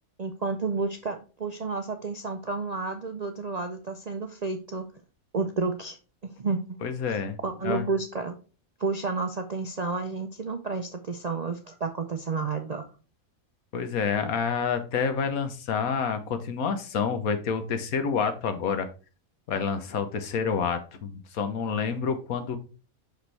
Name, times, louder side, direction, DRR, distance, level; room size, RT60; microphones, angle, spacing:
voice 1, 0.2-4.9 5.3-6.0 6.2-6.8 7.4-8.3 8.8-12.9, right 4 dB, 55° right, 5 dB, 0.4 m, -31 dB
voice 2, 6.8-7.4 7.6-7.9 13.7-18.9 19.5-22.6, left 6 dB, 80° left, 9 dB, 1.4 m, -28 dB
6.1 x 5.2 x 3.2 m, 0.35 s
omnidirectional pair, 1.5 m